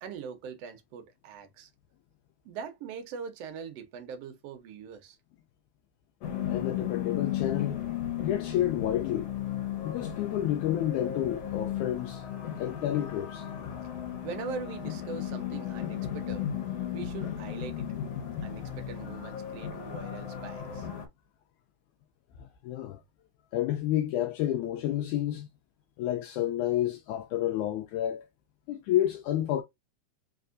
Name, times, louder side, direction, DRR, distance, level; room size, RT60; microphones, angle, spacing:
voice 1, 0.0-1.7 2.4-5.2 14.2-16.5 16.9-17.9 18.4-20.9, right 6 dB, 70° right, 1.5 m, -41 dB
sound 1, 6.2-21.1, left 10 dB, 60° left, 1.9 m, -35 dB
voice 2, 6.5-7.8 8.2-9.3 9.8-12.2 12.6-13.5 22.4-23.0 23.5-25.5 26.0-28.3 28.7-29.6, left 12 dB, 80° left, 1.8 m, -30 dB
4.7 x 3.4 x 2.5 m
omnidirectional pair, 3.8 m